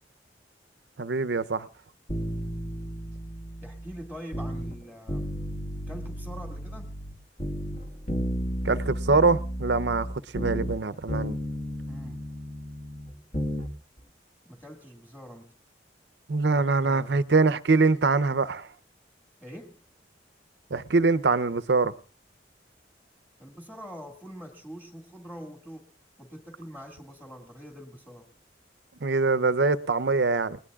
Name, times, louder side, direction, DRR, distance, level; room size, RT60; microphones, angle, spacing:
voice 1, 1.0-1.7 8.6-10.1 10.3-11.4 16.3-18.7 20.7-21.9 29.0-30.6, right 3 dB, 65° right, 0.7 m, -23 dB
sound 1, 2.1-4.8 5.1-7.1 7.4-10.8 11.1-13.7 14.0-14.1, equal, 40° left, 1.7 m, -33 dB
voice 2, 3.6-5.3 5.9-6.9 11.9-12.3 14.5-15.6 19.4-19.8 23.4-25.9 26.2-28.3, equal, 10° left, 1.9 m, -44 dB
30.0 x 19.5 x 2.4 m
head